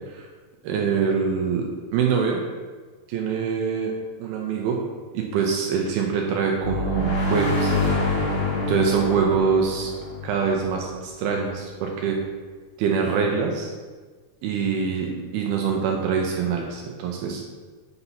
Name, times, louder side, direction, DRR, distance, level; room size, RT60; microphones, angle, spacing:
voice 1, 0.6-2.4 3.1-4.8 5.1-7.7 8.0-8.2 8.7-9.9 10.2-12.2 12.8-13.7 14.4-17.4, right 6 dB, 85° right, 0 dB, 2.3 m, -24 dB
sound 1, 6.6-11.2, left 1 dB, 45° left, 2.3 m, -26 dB
8.0 x 2.8 x 5.5 m, 1.4 s
omnidirectional pair, 4.4 m